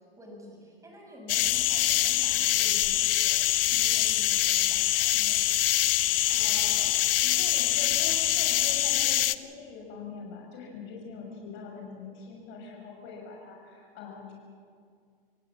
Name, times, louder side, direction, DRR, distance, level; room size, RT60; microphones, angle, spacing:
voice 1, 0.0-5.5, left 1 dB, 10° right, 1 dB, 6.7 m, -48 dB
sound 1, 1.3-9.3, left 13 dB, 70° left, 0.9 m, -24 dB
voice 2, 6.1-6.9 7.2-14.3, left 4 dB, 40° left, 0 dB, 6.3 m, -43 dB
26.5 x 17.0 x 7.4 m, 2.1 s
hypercardioid pair, 120°, 30 cm